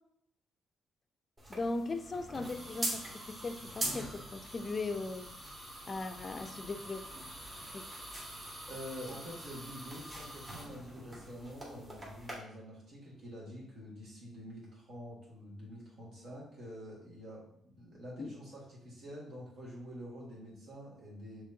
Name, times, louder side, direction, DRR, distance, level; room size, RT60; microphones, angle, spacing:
sound 1, 1.4-12.3, right 1 dB, 30° right, 1.6 m, -43 dB
voice 1, 1.5-5.3 5.8-7.0 7.6-7.9 18.2-18.3, left 3 dB, 35° left, 8 dB, 0.4 m, -38 dB
voice 2, 8.7-21.4, equal, 65° right, -4 dB, 1.8 m, -47 dB
6.3 x 3.1 x 2.7 m, 0.75 s
cardioid pair, 90°, 0 cm